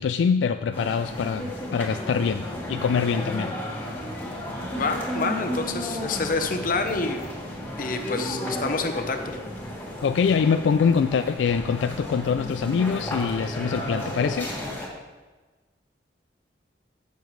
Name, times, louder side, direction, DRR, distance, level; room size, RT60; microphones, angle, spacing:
voice 1, 0.0-3.5 10.0-14.5, left 6 dB, 80° left, 9 dB, 0.3 m, -24 dB
sound 1, 0.7-14.9, left 1 dB, 10° left, 1.9 m, -33 dB
voice 2, 4.7-7.2 7.8-9.4, left 3 dB, 50° left, 6 dB, 0.9 m, -28 dB
15.5 x 6.9 x 3.2 m, 1.3 s
head